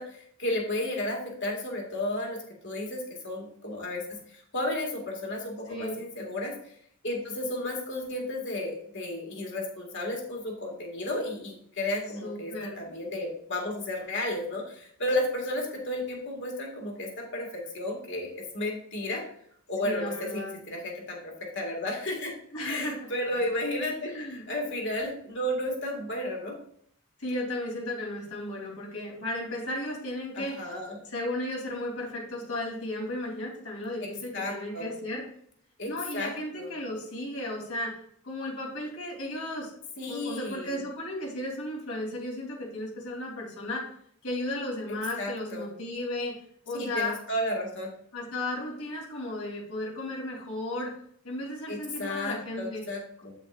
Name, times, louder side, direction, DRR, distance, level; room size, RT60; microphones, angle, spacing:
voice 1, 0.0-2.4 2.6-6.5 7.0-19.2 19.7-22.3 22.6-26.5 30.3-31.0 34.0-34.1 34.3-34.9 35.8-36.7 40.0-40.8 45.2-45.7 46.7-47.9 51.7-53.3, left 1 dB, 55° left, 0 dB, 2.0 m, -33 dB
voice 2, 12.2-12.8 19.8-20.5 22.5-23.1 24.0-24.4 27.2-30.7 31.0-35.3 35.9-39.7 40.1-43.9 44.2-46.4 46.6-47.2 48.1-51.0 51.2-52.8, left 1 dB, 75° left, -2 dB, 3.3 m, -34 dB
8.2 x 7.8 x 2.5 m, 0.65 s
head